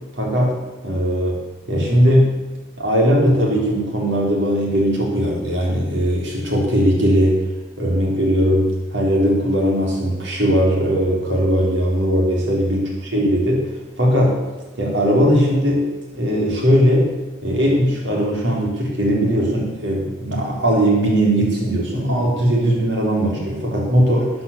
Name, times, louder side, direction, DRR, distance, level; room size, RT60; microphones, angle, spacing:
voice 1, 0.2-0.5 0.8-1.4 1.7-2.3 2.8-7.4 7.8-13.7 14.0-14.4 14.8-15.8 16.1-17.1 17.4-24.3, equal, 65° right, -2 dB, 4.0 m, -18 dB
12.5 x 9.4 x 6.9 m, 1.1 s
head